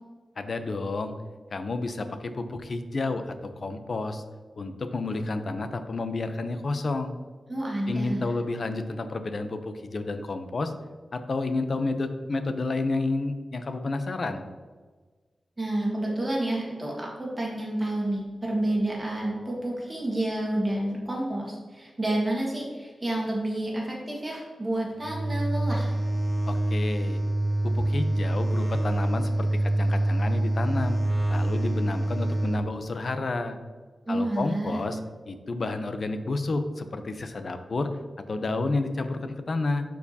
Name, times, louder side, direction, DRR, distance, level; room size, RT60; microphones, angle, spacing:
voice 1, 0.4-1.1 1.5-4.2 4.6-7.2 7.9-10.7 11.1-14.4 26.5-27.2 27.6-31.0 31.3-33.6 34.1-35.0 35.3-37.9 38.3-39.8, left 3 dB, 50° left, 8 dB, 0.6 m, -30 dB
voice 2, 7.5-8.3 15.6-26.0 34.1-34.8, right 1 dB, 25° right, -3 dB, 1.5 m, -29 dB
sound 1, 25.0-32.6, right 1 dB, ahead, 0.7 m, -26 dB
11.5 x 4.6 x 2.8 m, 1.4 s
wide cardioid pair, 120°, 0 cm